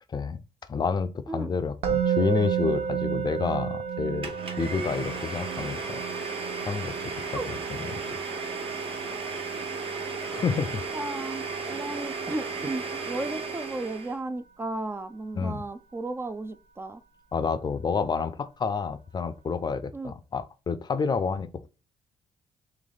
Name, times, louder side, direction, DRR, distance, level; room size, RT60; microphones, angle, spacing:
voice 1, 0.7-4.3 4.6-6.0 6.7-6.9 7.3-7.9 10.3-10.8 11.6-11.8 15.3-15.6 17.3-21.7, left 5 dB, 40° left, 0.5 m, -29 dB
Musical instrument, 1.8-12.9, right 8 dB, 75° right, 0.7 m, -33 dB
Domestic sounds home sounds, 4.2-14.2, right 4 dB, 55° right, 1.4 m, -34 dB
voice 2, 10.9-17.0 19.9-20.1, right 2 dB, 20° right, 0.4 m, -34 dB
3.2 x 3.1 x 3.9 m
supercardioid pair, 65°, 11 cm